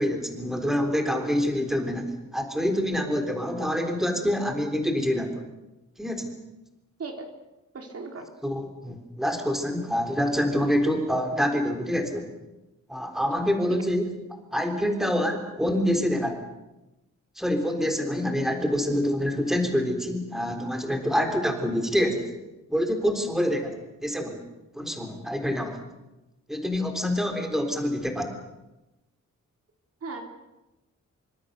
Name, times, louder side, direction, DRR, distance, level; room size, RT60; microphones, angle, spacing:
voice 1, 0.0-5.4 6.0-6.3 8.4-12.3 12.9-14.1 14.5-16.4 17.4-22.3 22.7-23.7 24.0-24.4 24.7-25.8 26.5-28.3, equal, ahead, 4 dB, 3.7 m, -26 dB
voice 2, 7.7-8.3 13.7-13.8 23.5-23.6 30.0-30.2, right 4 dB, 50° right, 3 dB, 3.9 m, -37 dB
26.0 x 25.0 x 6.8 m, 0.99 s
wide cardioid pair, 140°, 31 cm